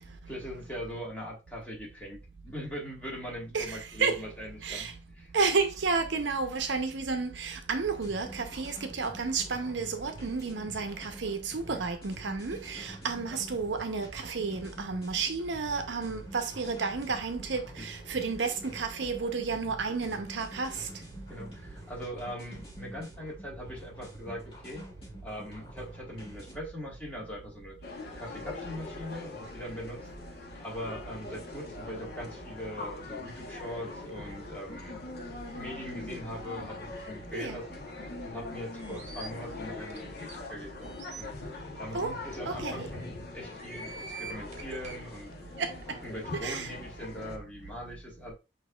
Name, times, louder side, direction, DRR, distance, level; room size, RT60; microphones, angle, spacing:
voice 1, 0.3-5.3 9.4-9.5 11.7-11.8 17.8-17.9 21.3-24.8 25.2-27.8 28.2-30.0 30.6-35.0 35.5-45.3 46.0-48.3, equal, 10° left, 1.5 m, -41 dB
voice 2, 3.5-4.2 4.6-4.9 5.3-20.9 37.3-37.6 41.9-42.1 42.5-42.9 45.6-45.7 46.4-46.7, right 4 dB, 65° right, 0.6 m, -31 dB
sound 1, 7.8-26.6, equal, 30° left, 1.7 m, -48 dB
sound 2, 27.8-47.4, left 3 dB, 55° left, 1.0 m, -42 dB
sound 3, 38.8-39.3 39.9-40.0 40.3-40.4 40.8-41.2 41.9-42.0 42.3-42.4 43.4-45.0, right 5 dB, 35° right, 1.1 m, -44 dB
6.1 x 2.9 x 2.3 m
head